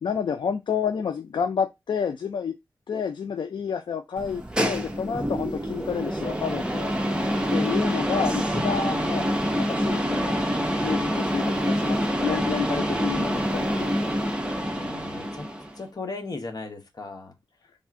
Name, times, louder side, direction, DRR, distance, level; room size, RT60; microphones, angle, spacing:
voice 1, 0.0-2.5 2.9-7.0 7.5-14.1, left 6 dB, 75° left, 0.4 m, -30 dB
sound 1, 4.2-15.8, equal, 10° right, 0.8 m, -26 dB
voice 2, 14.7-15.5 15.8-17.3, left 3 dB, 55° left, 0.9 m, -37 dB
3.5 x 2.4 x 4.5 m
wide cardioid pair, 75°, 8 cm